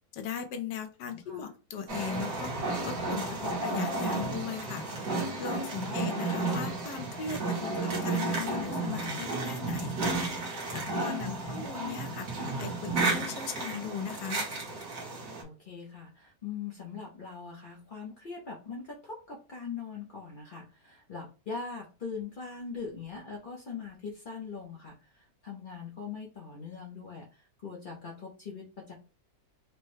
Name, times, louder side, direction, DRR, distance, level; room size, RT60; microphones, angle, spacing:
voice 1, 0.1-2.5 2.8-4.8 5.4-10.1 10.7-12.3 12.6-14.4, left 6 dB, 80° left, 7 dB, 1.3 m, -38 dB
voice 2, 1.1-1.5 5.7-6.1 11.2-11.6 15.4-28.9, left 5 dB, 55° left, -3 dB, 0.5 m, -42 dB
sound 1, 1.9-15.4, right 3 dB, 60° right, 1.6 m, -32 dB
4.4 x 2.2 x 3.1 m, 0.34 s
omnidirectional pair, 1.9 m